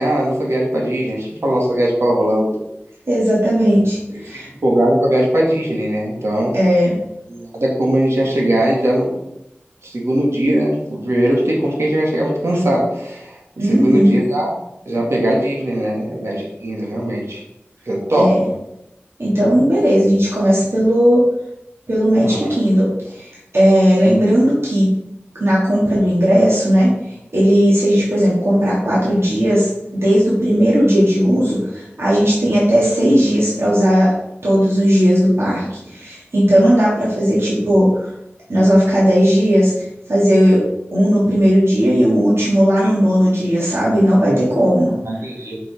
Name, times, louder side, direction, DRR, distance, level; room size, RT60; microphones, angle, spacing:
voice 1, 0.0-2.5 4.1-4.2 4.6-6.5 7.3-9.1 9.8-13.4 13.6-14.5 14.9-17.4 17.9-18.3 22.2-22.5 44.3-44.4 45.1-45.6, right 1 dB, 90° right, -3 dB, 2.2 m, -19 dB
voice 2, 3.1-4.5 6.5-6.9 13.6-14.1 18.1-18.4 19.2-21.2 21.9-24.9 25.4-26.9 27.3-34.1 34.4-38.1 38.5-40.6 40.9-44.9, equal, 70° right, -8 dB, 2.9 m, -15 dB
6.1 x 6.0 x 5.3 m, 0.84 s
wide cardioid pair, 40°, 4 cm